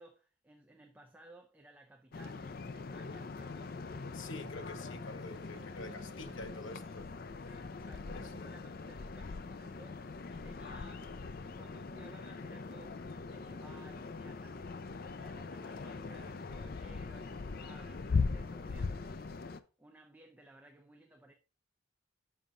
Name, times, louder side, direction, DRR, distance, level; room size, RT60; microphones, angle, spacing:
voice 1, 0.0-3.8 5.3-7.0 7.4-21.3, right 1 dB, 10° right, 0.6 m, -58 dB
sound 1, 2.1-19.6, left 4 dB, 50° left, 0.5 m, -41 dB
voice 2, 4.1-7.1 8.1-8.5, left 2 dB, 85° left, 1.1 m, -47 dB
7.1 x 6.0 x 3.7 m
head